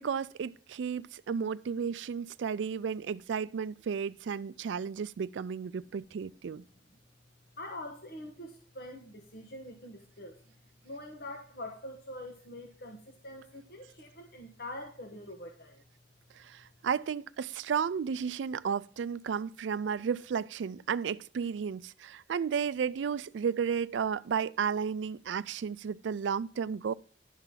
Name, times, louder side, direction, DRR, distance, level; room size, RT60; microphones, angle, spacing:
voice 1, 0.0-6.6 16.4-26.9, right 6 dB, 70° right, 0.4 m, -33 dB
voice 2, 7.6-10.5 10.8-15.8, left 1 dB, 55° left, 1.2 m, -44 dB
11.0 x 3.9 x 7.2 m
head